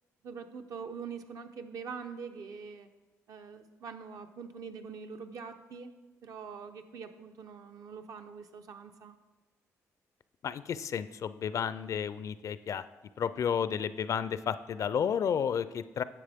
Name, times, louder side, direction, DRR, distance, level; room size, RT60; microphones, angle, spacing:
voice 1, 0.2-2.9 3.3-5.9 6.2-9.2, right 5 dB, 65° right, 6 dB, 0.7 m, -44 dB
voice 2, 10.4-12.8 13.2-16.0, left 7 dB, 60° left, 14 dB, 0.4 m, -32 dB
10.0 x 7.4 x 3.5 m, 1.1 s
cardioid pair, 70°, 6 cm